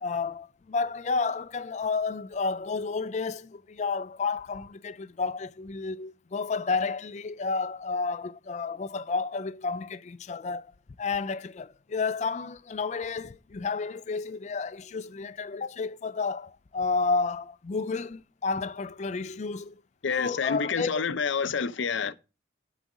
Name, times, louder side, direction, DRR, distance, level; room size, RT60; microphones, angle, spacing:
voice 1, 0.0-10.7 11.0-19.8 20.1-21.0, left 4 dB, 35° left, 0.3 m, -31 dB
voice 2, 20.0-22.1, left 5 dB, 80° left, 0.6 m, -28 dB
8.0 x 4.0 x 6.1 m
head